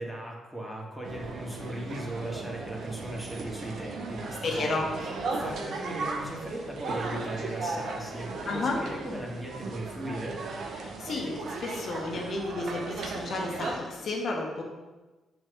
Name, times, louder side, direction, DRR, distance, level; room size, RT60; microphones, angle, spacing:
voice 1, 0.0-4.7 5.3-10.4, right 1 dB, 5° left, -3 dB, 1.7 m, -38 dB
sound 1, 1.0-13.8, right 3 dB, 65° right, 0.7 m, -36 dB
voice 2, 4.4-4.9 8.4-8.8 10.8-14.6, left 3 dB, 55° left, 0 dB, 1.2 m, -32 dB
6.2 x 3.2 x 5.0 m, 1.2 s
hypercardioid pair, 45°, 0 cm